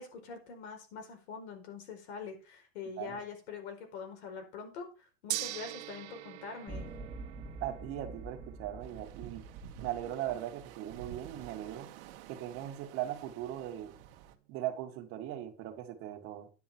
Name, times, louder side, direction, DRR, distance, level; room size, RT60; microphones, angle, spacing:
voice 1, 0.0-6.9, left 5 dB, 80° left, 4.6 m, -44 dB
Gong, 5.3-15.5, right 16 dB, 85° right, 1.2 m, -46 dB
sound 1, 6.7-11.0, right 2 dB, 15° right, 1.5 m, -47 dB
voice 2, 7.6-9.5 9.8-11.9 12.3-13.9 14.5-16.5, right 12 dB, 40° right, 1.8 m, -39 dB
sound 2, 8.8-14.3, right 10 dB, 60° right, 1.5 m, -50 dB
10.0 x 9.1 x 4.4 m
supercardioid pair, 170°, 33 cm